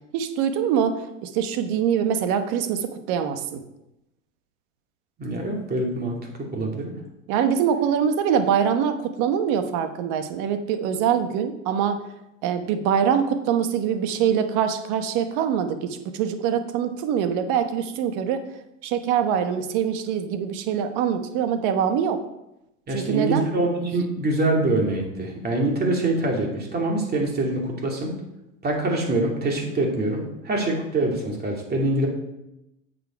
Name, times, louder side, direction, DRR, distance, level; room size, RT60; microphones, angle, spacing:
voice 1, 0.1-3.6 7.3-12.0 12.4-18.4 18.8-22.2 22.9-23.5, right 8 dB, 55° right, 8 dB, 1.2 m, -24 dB
voice 2, 5.2-6.2 6.5-6.9 22.9-28.1 28.6-32.1, right 2 dB, 25° right, 0 dB, 2.7 m, -24 dB
9.3 x 6.9 x 4.6 m, 0.88 s
hypercardioid pair, 110°, 37 cm